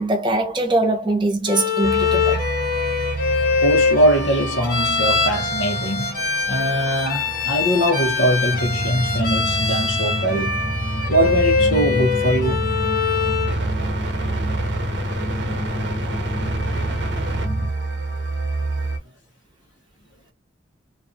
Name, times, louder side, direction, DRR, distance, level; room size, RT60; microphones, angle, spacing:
voice 1, 0.0-2.5, right 2 dB, 25° right, 0.7 m, -22 dB
Bowed string instrument, 1.5-13.6, left 5 dB, 45° left, 0.9 m, -23 dB
sound 1, 1.8-19.0, right 3 dB, 60° right, 0.7 m, -29 dB
voice 2, 3.6-10.7 11.1-12.6, equal, 75° left, 0.9 m, -22 dB
sound 2, 8.5-17.7, left 1 dB, 20° left, 0.5 m, -28 dB
2.6 x 2.3 x 2.5 m
head